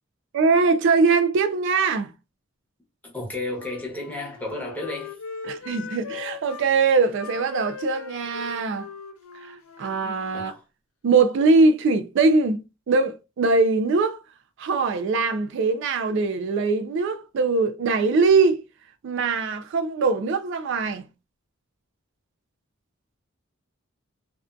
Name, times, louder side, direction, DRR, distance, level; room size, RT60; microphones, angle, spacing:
voice 1, 0.3-2.1 5.5-8.9 9.5-10.5 11.0-14.2 14.6-18.6 19.0-21.1, right 4 dB, 60° right, 0.4 m, -22 dB
voice 2, 3.0-5.2 10.3-10.6, left 2 dB, 10° left, 0.9 m, -33 dB
Wind instrument woodwind instrument, 3.5-6.7 7.1-10.6, left 5 dB, 90° left, 0.5 m, -39 dB
2.5 x 2.4 x 2.2 m
head